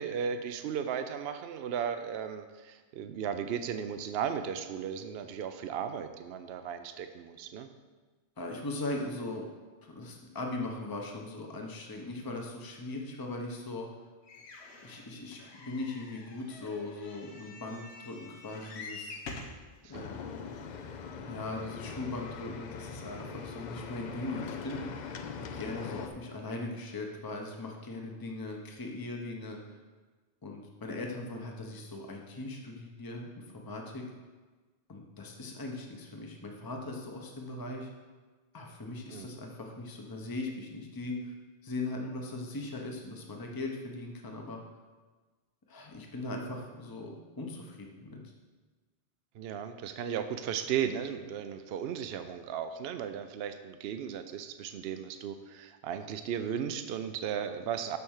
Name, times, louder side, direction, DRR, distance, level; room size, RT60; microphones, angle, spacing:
voice 1, 0.0-7.7 19.8-20.1 39.1-39.4 49.3-58.0, right 8 dB, 70° right, 9 dB, 0.8 m, -35 dB
voice 2, 8.4-9.5 9.8-13.9 14.8-19.1 19.9-20.6 21.2-25.0 25.5-29.6 30.4-34.0 34.9-37.9 38.5-41.3 41.6-44.6 45.7-48.2, left 2 dB, 20° left, 1 dB, 0.9 m, -39 dB
sound 1, 14.3-19.6 20.4-20.5 20.7-20.8, left 3 dB, 75° left, 1.2 m, -47 dB
sound 2, 19.9-26.1, left 6 dB, 50° left, 0.6 m, -42 dB
7.0 x 5.9 x 6.5 m, 1.3 s
omnidirectional pair, 1.1 m